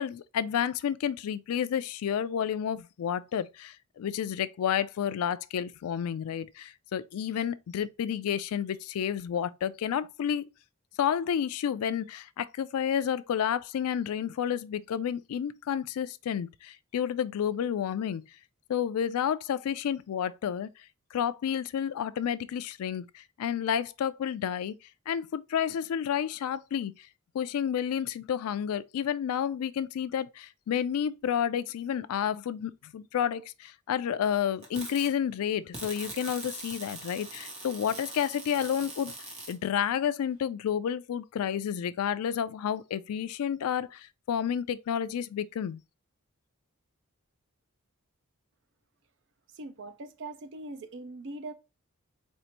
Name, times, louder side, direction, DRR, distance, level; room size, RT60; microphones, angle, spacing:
voice 1, 0.0-10.5 11.0-18.2 18.7-20.7 21.1-24.8 25.1-26.9 27.3-39.1 39.5-45.8, left 8 dB, 80° left, 0.3 m, -30 dB
sound 1, 34.6-35.1 35.7-39.6, right 2 dB, 30° right, 1.0 m, -42 dB
voice 2, 49.5-51.5, right 2 dB, 55° right, 0.5 m, -41 dB
4.4 x 2.5 x 2.8 m
head